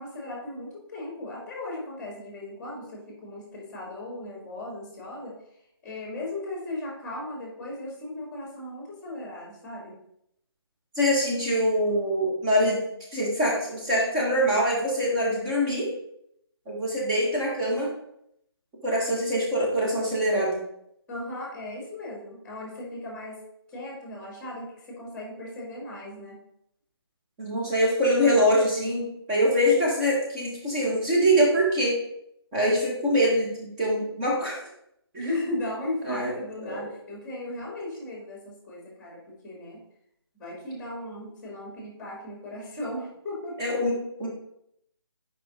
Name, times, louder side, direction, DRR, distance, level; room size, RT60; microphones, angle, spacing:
voice 1, 0.0-5.4 5.8-10.0 21.1-23.4 23.7-26.4 35.2-39.8 40.3-43.8, left 1 dB, 10° left, -2 dB, 1.7 m, -36 dB
voice 2, 11.0-12.8 13.1-15.9 16.7-17.9 18.8-20.6 27.4-32.0 32.5-34.6 35.1-35.3 36.0-36.3 36.6-36.8 43.6-44.3, equal, 15° right, -5 dB, 1.6 m, -24 dB
6.8 x 5.1 x 3.6 m, 0.75 s
figure-of-eight pair, 150°, 14 cm